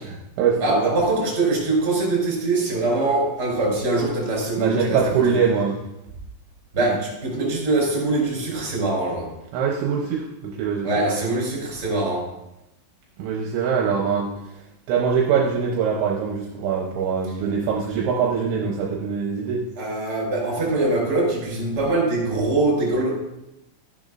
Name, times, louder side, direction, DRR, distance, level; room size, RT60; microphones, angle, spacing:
voice 1, 0.0-0.9 4.6-5.8 6.8-6.9 9.5-11.2 13.2-14.3 14.9-19.7, right 6 dB, 75° right, -1 dB, 3.0 m, -23 dB
voice 2, 0.6-5.4 6.7-9.3 10.8-12.3 19.8-23.2, right 2 dB, 20° right, -4 dB, 3.7 m, -23 dB
13.5 x 10.5 x 2.6 m, 0.89 s
omnidirectional pair, 5.6 m